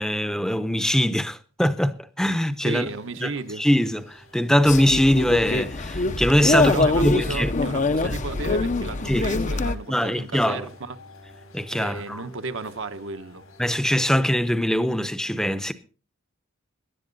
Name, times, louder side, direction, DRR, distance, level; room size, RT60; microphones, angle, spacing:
voice 1, 0.0-2.9 3.2-3.3 3.6-6.7 7.0-7.5 8.1-8.2 9.1-9.3 9.9-10.6 11.5-12.2 13.6-15.7, equal, 5° left, 0.7 m, -22 dB
sound 1, 2.6-14.1, left 1 dB, 90° left, 5.7 m, -51 dB
voice 2, 2.6-3.7 6.5-11.0 11.7-13.5, right 3 dB, 65° right, 1.0 m, -33 dB
sound 2, 4.6-9.7, left 3 dB, 35° left, 0.7 m, -24 dB
18.0 x 11.0 x 4.0 m
head